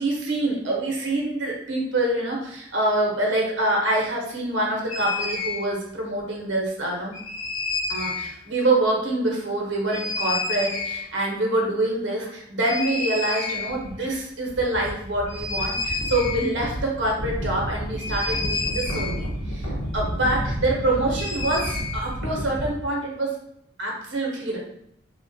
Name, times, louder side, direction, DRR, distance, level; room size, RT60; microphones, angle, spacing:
voice 1, 0.0-7.1 7.9-23.3 23.8-24.6, right 2 dB, 65° right, -2 dB, 0.8 m, -25 dB
sound 1, 4.9-5.6 7.1-8.3 9.9-11.0 12.6-13.9 14.2-14.3 14.5-22.7, left 2 dB, 75° left, 0.8 m, -29 dB
3.5 x 2.1 x 2.6 m, 0.72 s
head